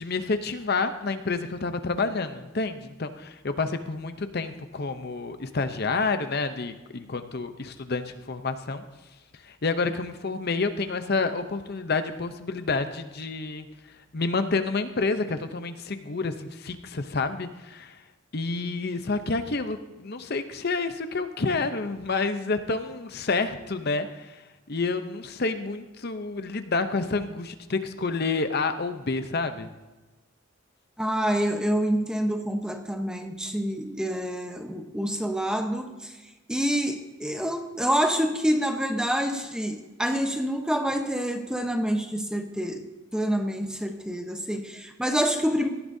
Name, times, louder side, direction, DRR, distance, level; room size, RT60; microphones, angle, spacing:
voice 1, 0.0-8.8 9.4-13.7 14.1-18.0 18.3-29.7, left 3 dB, 45° left, 9 dB, 0.7 m, -29 dB
voice 2, 31.0-36.2 36.5-42.8 43.1-45.7, equal, 5° right, 5 dB, 0.9 m, -27 dB
17.5 x 13.0 x 2.7 m, 1.2 s
head